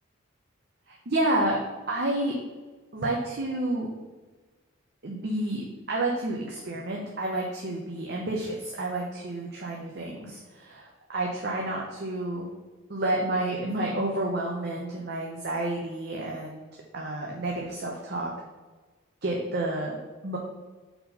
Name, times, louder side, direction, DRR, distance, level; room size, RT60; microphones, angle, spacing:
voice 1, 0.9-1.6 1.9-2.3 2.9-3.9 5.0-12.5 12.9-16.7 16.9-18.3 19.2-20.0 20.2-20.4, right 1 dB, 50° right, -2 dB, 0.8 m, -30 dB
4.5 x 4.2 x 5.5 m, 1.3 s
head